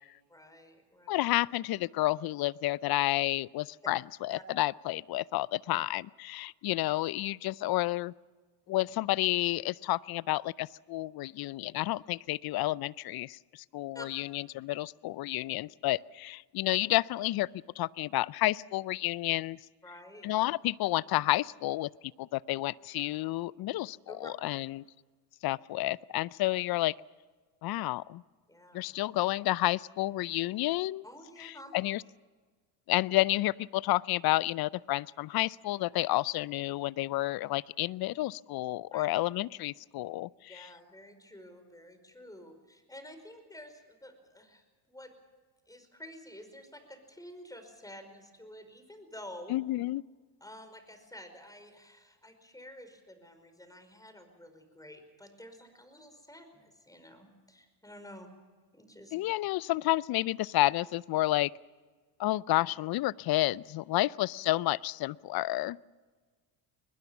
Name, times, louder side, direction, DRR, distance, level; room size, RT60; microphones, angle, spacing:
voice 1, 0.3-1.1 4.3-4.4 13.9-14.1 19.8-20.3 24.1-24.3 28.5-28.8 31.0-31.8 38.9-39.1 40.5-45.1 45.7-49.5 50.4-58.3 58.7-59.2, left 1 dB, 5° left, 8 dB, 5.1 m, -50 dB
voice 2, 1.1-8.1 8.7-19.6 20.2-21.9 22.2-24.8 25.4-26.9 27.6-28.2 28.7-31.0 31.4-32.0 32.9-40.7 49.5-50.0 59.1-61.5 62.2-65.8, left 17 dB, 50° left, 22 dB, 0.6 m, -30 dB
22.5 x 20.5 x 7.1 m, 1.4 s
supercardioid pair, 80°, 50 cm